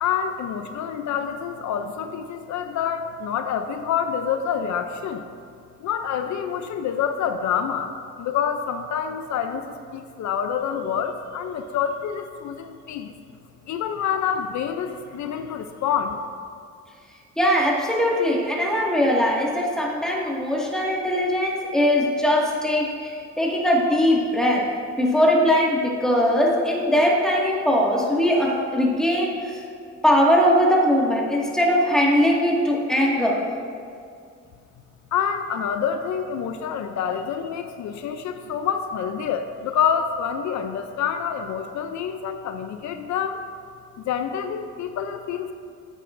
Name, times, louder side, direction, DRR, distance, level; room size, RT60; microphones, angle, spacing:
voice 1, 0.0-5.2 5.8-13.2 13.7-16.2 35.1-43.4 44.0-45.5, left 8 dB, 70° left, 7 dB, 0.6 m, -27 dB
voice 2, 17.4-24.7 25.0-29.5 30.0-33.4, equal, ahead, -3 dB, 1.9 m, -20 dB
13.5 x 8.8 x 2.6 m, 2.3 s
cardioid pair, 90°, 30 cm